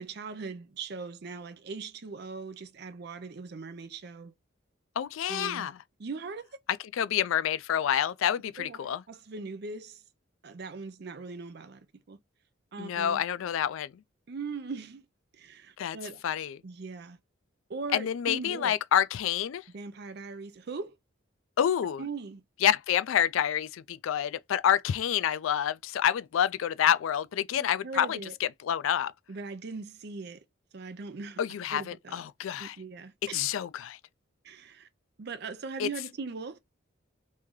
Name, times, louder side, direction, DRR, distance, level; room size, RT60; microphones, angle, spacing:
voice 1, 0.0-4.3 5.3-5.7 6.0-6.5 8.6-10.0 10.4-12.2 12.7-13.2 14.3-15.0 15.3-16.2 16.6-17.2 17.7-18.7 19.7-21.0 22.0-22.4 27.6-28.3 29.3-30.4 30.7-31.4 31.7-32.2 32.6-33.5 34.4-34.9 35.2-36.6, right 4 dB, 50° right, 0.5 m, -40 dB
voice 2, 5.0-5.7 6.9-9.0 12.8-13.9 15.8-16.0 16.2-16.6 17.9-19.6 21.6-22.0 22.6-29.1 31.4-32.8 33.3-34.0 35.8-35.9, left 9 dB, 80° left, 0.3 m, -28 dB
3.1 x 2.7 x 3.6 m
head